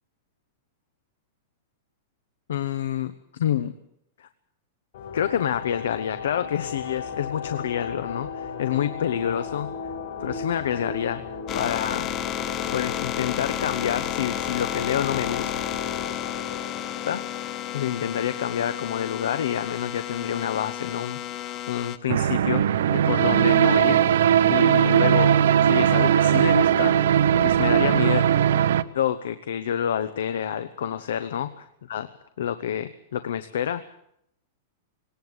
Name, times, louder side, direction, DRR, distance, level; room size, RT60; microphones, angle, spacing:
voice 1, 2.5-3.7 4.2-4.3 5.1-9.7 10.2-11.2 11.5-12.1 12.7-15.5 17.0-17.2 17.7-24.0 24.5-27.0 27.4-28.3 28.9-32.1 32.4-33.8, left 9 dB, 85° left, 12 dB, 1.0 m, -28 dB
sound 1, 4.9-18.5, left 6 dB, 60° left, 5.1 m, -36 dB
sound 2, 11.5-22.0, left 11 dB, 25° left, 0.8 m, -32 dB
sound 3, 22.1-28.8, right 9 dB, 75° right, 0.8 m, -19 dB
19.5 x 18.5 x 8.1 m, 0.75 s
supercardioid pair, 170°, 0 cm